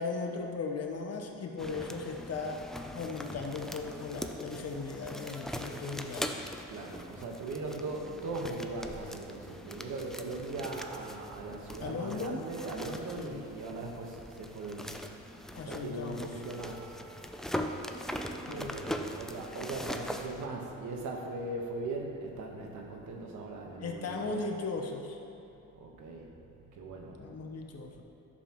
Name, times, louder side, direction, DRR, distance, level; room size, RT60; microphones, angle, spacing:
voice 1, 0.0-2.6 2.9-6.5 11.8-12.4 13.2-13.4 15.5-16.3 18.5-18.7 23.8-25.2 27.2-28.0, left 4 dB, 55° left, 2 dB, 1.0 m, -37 dB
sound 1, 1.6-20.5, equal, ahead, 0.4 m, -41 dB
voice 2, 1.7-2.0 6.6-16.9 18.3-24.4 25.7-27.2, right 2 dB, 75° right, 1 dB, 1.3 m, -40 dB
11.0 x 6.9 x 3.0 m, 2.8 s
cardioid pair, 90°, 30 cm